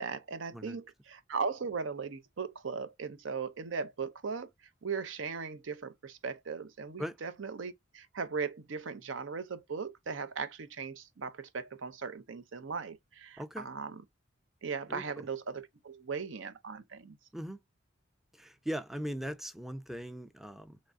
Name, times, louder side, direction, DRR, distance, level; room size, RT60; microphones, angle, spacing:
voice 1, 0.0-4.5 4.8-13.9 14.6-17.2, right 5 dB, 80° right, 0.6 m, -38 dB
voice 2, 13.4-13.7 14.9-15.3 17.3-17.6 18.3-20.8, equal, ahead, 0.4 m, -39 dB
3.6 x 3.2 x 2.5 m
head